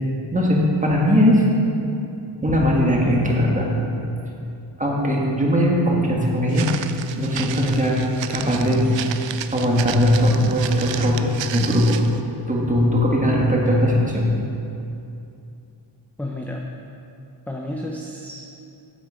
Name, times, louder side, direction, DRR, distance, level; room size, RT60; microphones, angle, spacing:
voice 1, 0.3-1.4 2.4-3.7 4.8-6.7 7.2-8.0 8.3-8.8 9.1-9.2 9.5-12.0 12.5-14.2, equal, 15° right, -2 dB, 1.7 m, -19 dB
Walk footsteps, 6.5-12.2, right 10 dB, 80° right, 0.5 m, -33 dB
voice 2, 16.2-16.7 17.5-18.4, left 1 dB, 5° left, -1 dB, 0.6 m, -31 dB
8.3 x 7.6 x 5.1 m, 2.7 s
wide cardioid pair, 95°, 44 cm